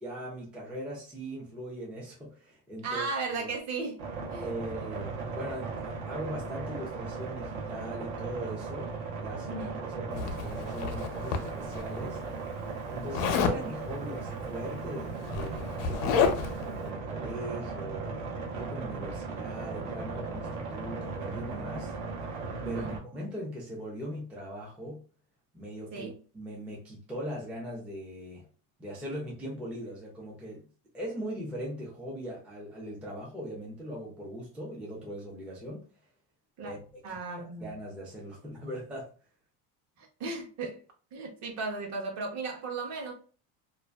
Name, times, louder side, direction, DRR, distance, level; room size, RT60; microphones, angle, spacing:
voice 1, 0.0-3.5 4.4-12.2 12.9-18.1 18.5-21.9 22.6-25.0 25.5-28.5 28.8-30.6 30.9-35.9 36.6-37.2 37.6-39.1, equal, 5° right, 0.4 m, -40 dB
voice 2, 2.8-4.5 9.5-9.7 13.4-13.5 22.6-23.0 25.9-26.1 36.6-36.7 37.0-37.7 40.0-40.8 41.1-43.1, right 3 dB, 40° right, 0.7 m, -36 dB
sound 1, 4.0-23.0, right 4 dB, 80° right, 0.9 m, -37 dB
Zipper (clothing), 10.2-11.8 13.1-13.6 14.8-14.9 15.2-16.6, left 6 dB, 85° left, 0.6 m, -29 dB
2.4 x 2.3 x 2.2 m
cardioid pair, 135°, 41 cm